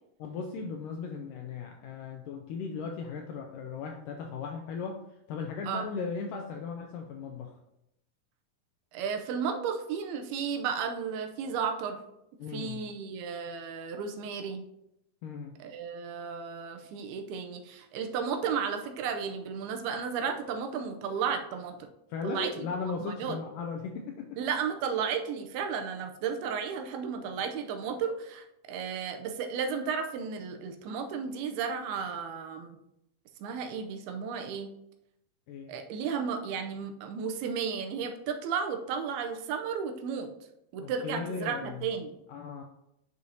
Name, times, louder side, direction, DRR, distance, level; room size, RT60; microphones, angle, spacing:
voice 1, 0.2-5.0 5.3-7.6 12.4-12.8 15.2-15.5 22.1-24.4 35.5-35.7 40.8-41.8 42.3-42.6, left 5 dB, 85° left, 3 dB, 1.9 m, -37 dB
voice 2, 8.9-12.0 12.5-14.6 15.6-21.9 22.2-22.5 23.0-23.4 24.4-32.8 33.4-34.7 35.7-40.3 40.7-42.2, right 6 dB, 85° right, 5 dB, 2.7 m, -33 dB
9.5 x 6.4 x 2.8 m, 0.83 s
omnidirectional pair, 4.5 m